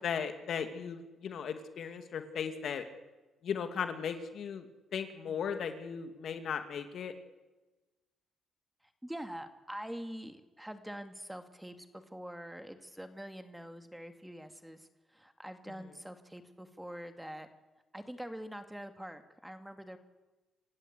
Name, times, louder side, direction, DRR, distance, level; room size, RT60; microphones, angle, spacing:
voice 1, 0.0-2.9 3.4-4.7 4.9-7.1, left 7 dB, 65° left, 7 dB, 2.6 m, -37 dB
voice 2, 8.8-17.5 17.9-20.0, equal, 5° right, 7 dB, 2.3 m, -45 dB
27.5 x 16.0 x 8.3 m, 1.1 s
cardioid pair, 90°, 0 cm